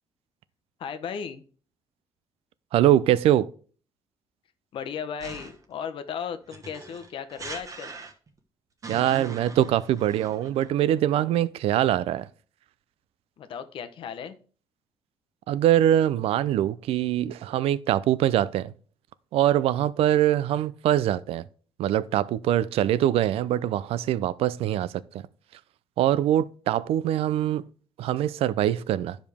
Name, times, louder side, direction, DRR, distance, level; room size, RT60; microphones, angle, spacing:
voice 1, 0.8-1.4 4.7-7.9 13.4-14.4, left 7 dB, 60° left, 0.8 m, -35 dB
voice 2, 2.7-3.5 8.9-12.3 15.5-18.7 19.3-21.4 21.8-25.2 26.0-27.6 28.0-29.2, right 12 dB, 75° right, 0.4 m, -23 dB
sound 1, 5.2-5.7 6.5-8.4 8.8-10.7, right 3 dB, 35° right, 1.1 m, -41 dB
10.5 x 5.1 x 3.5 m
cardioid pair, 125°, 10 cm